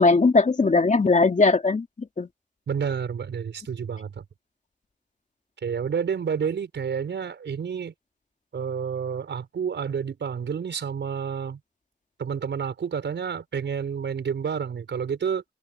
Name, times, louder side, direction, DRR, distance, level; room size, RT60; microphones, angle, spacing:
voice 1, 0.0-2.3, left 3 dB, 45° left, 2.9 m, -19 dB
voice 2, 2.7-4.2 5.6-7.9 8.5-11.6 12.2-15.4, right 7 dB, 85° right, 5.8 m, -29 dB
cardioid pair, 65°, 18 cm